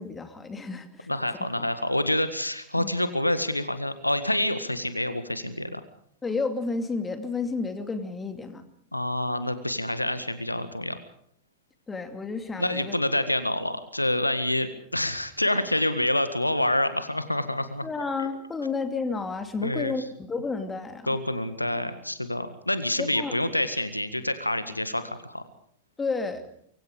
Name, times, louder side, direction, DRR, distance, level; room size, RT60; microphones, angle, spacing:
voice 1, 0.0-1.1 2.7-3.0 6.2-8.6 11.9-13.0 17.8-21.2 23.0-23.4 26.0-26.5, left 4 dB, 15° left, 7 dB, 2.6 m, -31 dB
voice 2, 1.1-5.8 8.9-11.0 12.6-17.9 18.2-18.3 19.6-19.9 21.1-25.4, left 1 dB, 85° left, 11 dB, 1.6 m, -27 dB
25.0 x 24.0 x 5.2 m, 0.65 s
figure-of-eight pair, 90°, 0 cm